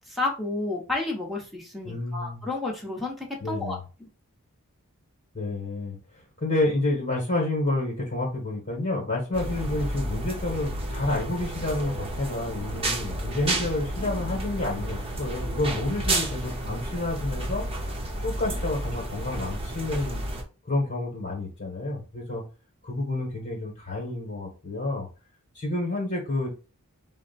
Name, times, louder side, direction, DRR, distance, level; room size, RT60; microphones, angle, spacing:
voice 1, 0.1-4.1, left 2 dB, ahead, -1 dB, 1.1 m, -31 dB
voice 2, 1.8-2.5 3.4-3.8 5.3-17.7 18.2-20.2 20.6-22.4 22.8-25.1 25.5-26.5, left 2 dB, 40° left, -1 dB, 1.3 m, -29 dB
sound 1, 9.3-20.4, right 1 dB, 25° right, 0.9 m, -31 dB
4.2 x 2.2 x 4.2 m, 0.33 s
head